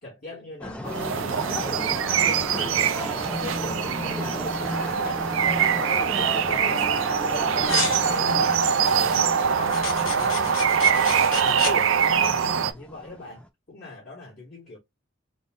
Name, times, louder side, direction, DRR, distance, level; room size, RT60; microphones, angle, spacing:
voice 1, 0.0-2.0 2.2-6.2 6.5-9.9 10.2-10.6 11.1-12.0 12.3-14.8, left 2 dB, 45° left, 1.6 m, -40 dB
sound 1, 0.6-13.5, left 1 dB, 5° left, 0.5 m, -35 dB
sound 2, 0.9-12.7, right 7 dB, 80° right, 0.5 m, -23 dB
sound 3, 7.6-8.8 9.7-11.8, left 5 dB, 85° left, 1.4 m, -32 dB
3.7 x 2.3 x 3.7 m
head